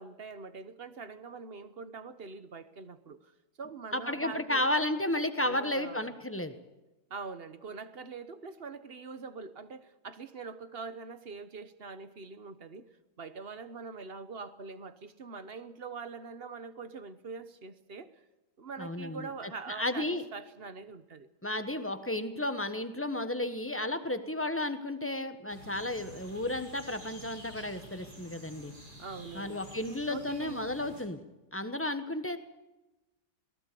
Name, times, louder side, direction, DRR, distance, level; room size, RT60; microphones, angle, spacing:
voice 1, 0.0-3.3 3.6-4.6 5.4-6.1 7.1-12.9 13.2-18.1 18.6-21.3 29.0-29.6 29.9-30.7, right 4 dB, 40° right, 12 dB, 1.2 m, -43 dB
voice 2, 3.9-6.5 18.8-19.3 19.7-20.2 21.4-28.7 29.3-31.2 31.5-32.4, left 1 dB, 10° left, 9 dB, 1.2 m, -33 dB
sound 1, 25.5-31.0, right 1 dB, 65° right, 6.2 m, -50 dB
21.5 x 18.5 x 7.0 m, 1.0 s
omnidirectional pair, 1.8 m